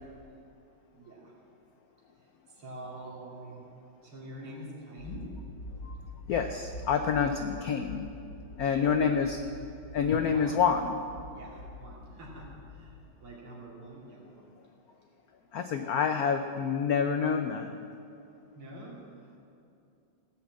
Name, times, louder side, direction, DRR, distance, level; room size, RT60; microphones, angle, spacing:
voice 1, 0.9-1.3 2.5-3.7 4.0-5.3 8.6-9.3 10.3-10.6 11.3-14.5 18.6-19.3, right 1 dB, 90° right, -4 dB, 3.5 m, -46 dB
sound 1, 5.0-13.0, left 2 dB, 45° left, 1.3 m, -45 dB
voice 2, 6.3-8.1 8.6-9.4 9.9-11.0 15.5-17.8, left 6 dB, 90° left, 7 dB, 0.8 m, -27 dB
16.5 x 5.8 x 8.2 m, 2.6 s
omnidirectional pair, 2.3 m